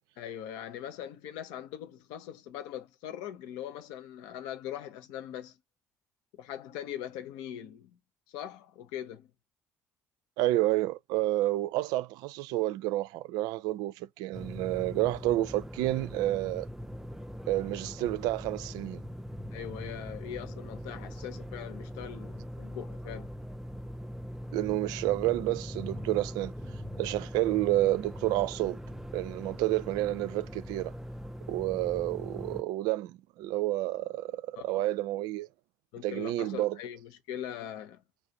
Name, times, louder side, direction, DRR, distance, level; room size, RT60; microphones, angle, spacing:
voice 1, 0.2-5.6 6.3-8.0 8.3-9.3 19.5-23.3 34.6-34.7 35.9-38.0, left 10 dB, 65° left, 0.6 m, -41 dB
voice 2, 10.4-16.7 17.5-19.0 24.5-26.5 27.0-28.8 29.1-30.9 31.5-35.5 36.0-36.8, right 16 dB, 60° right, 0.4 m, -30 dB
sound 1, 14.3-32.6, equal, 5° right, 0.5 m, -41 dB
3.5 x 2.5 x 4.0 m
figure-of-eight pair, 55°, 8 cm